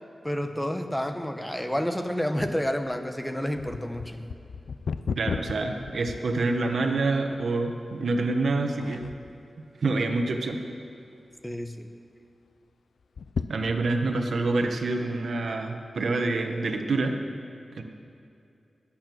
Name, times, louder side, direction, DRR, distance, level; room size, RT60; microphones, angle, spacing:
voice 1, 0.2-4.3 11.4-11.9, equal, 5° left, 7 dB, 0.9 m, -29 dB
sound 1, 2.4-6.9 7.4-7.5 8.2-8.5 8.8-9.5 10.0-10.7 11.0-11.1 11.4-11.5 13.0-14.1 14.7-14.8, left 5 dB, 90° left, 0.5 m, -35 dB
voice 2, 5.2-9.1 9.8-10.6 13.5-17.2 17.7-17.8, right 3 dB, 70° right, 4 dB, 1.2 m, -27 dB
21.0 x 8.8 x 6.2 m, 2.6 s
wide cardioid pair, 130°, 0 cm